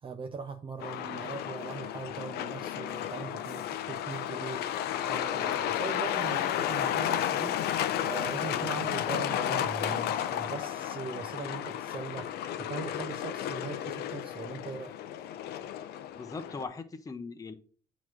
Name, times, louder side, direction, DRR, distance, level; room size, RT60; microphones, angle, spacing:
voice 1, 0.0-7.6 8.0-14.9, right 5 dB, 30° right, 0.6 m, -40 dB
Truck, 0.8-16.6, left 10 dB, 70° left, 0.6 m, -33 dB
voice 2, 16.1-17.5, left 4 dB, 20° left, 0.8 m, -39 dB
8.3 x 3.1 x 5.9 m
cardioid pair, 110°, 17 cm